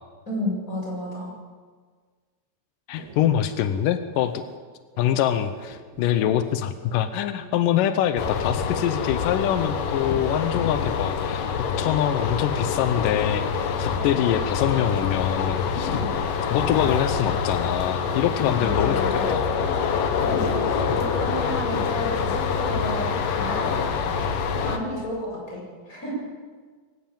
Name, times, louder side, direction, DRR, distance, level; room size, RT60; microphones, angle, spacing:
voice 1, 0.3-1.3 18.5-19.2 20.2-24.0 24.6-26.2, left 1 dB, 20° left, -3 dB, 7.9 m, -32 dB
voice 2, 2.9-4.4 5.0-11.5 11.8-16.0 16.5-19.5, left 10 dB, 85° left, 10 dB, 1.9 m, -24 dB
sound 1, 3.0-3.3 3.7-4.6 4.9-7.0 7.4-7.5 9.1-11.2 12.7-12.8 13.3-14.1 14.4-16.2 16.5-16.7 19.0-19.1 19.4-20.2 20.6-20.9, right 6 dB, 65° right, 3.5 m, -44 dB
sound 2, 8.2-24.8, left 6 dB, 60° left, 2.7 m, -25 dB
24.0 x 15.0 x 9.0 m, 1.5 s
omnidirectional pair, 5.0 m